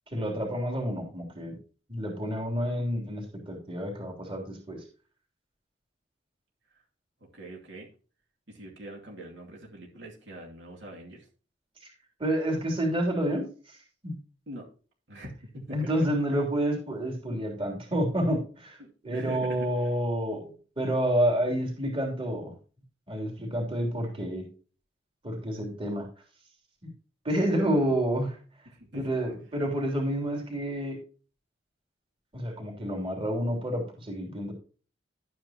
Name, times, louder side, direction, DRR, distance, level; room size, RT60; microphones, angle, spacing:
voice 1, 0.1-1.6 1.9-4.8 12.2-13.8 14.0-14.2 15.7-18.8 19.0-22.5 23.1-24.4 25.2-26.1 26.8-26.9 27.2-28.4 28.9-31.0 32.3-34.5, right 1 dB, 30° right, 0 dB, 3.1 m, -29 dB
voice 2, 7.3-7.9 8.5-11.3 14.5-14.7 15.1-15.9 18.8-19.9 27.6-28.0 28.7-29.1, right 1 dB, 70° right, -1 dB, 2.6 m, -43 dB
11.5 x 9.3 x 2.9 m, 0.37 s
head